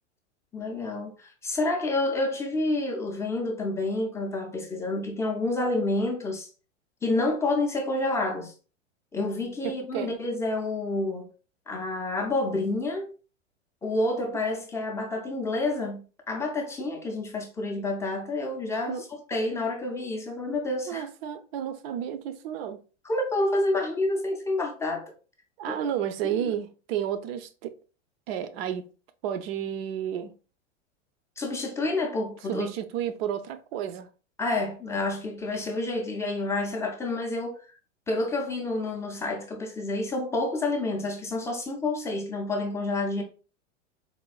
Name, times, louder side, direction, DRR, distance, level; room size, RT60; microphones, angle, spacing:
voice 1, 0.5-6.5 7.0-8.5 9.1-11.3 11.7-13.1 13.8-21.0 23.0-25.1 25.7-25.8 26.4-26.5 31.4-32.7 34.4-37.6 38.1-43.2, left 2 dB, 10° left, 0.3 m, -29 dB
voice 2, 9.6-10.1 18.9-19.0 20.9-22.8 25.6-27.7 28.3-28.9 29.2-30.3 32.5-34.1, right 9 dB, 55° right, 0.5 m, -31 dB
4.2 x 2.1 x 2.3 m
hypercardioid pair, 115°, 37 cm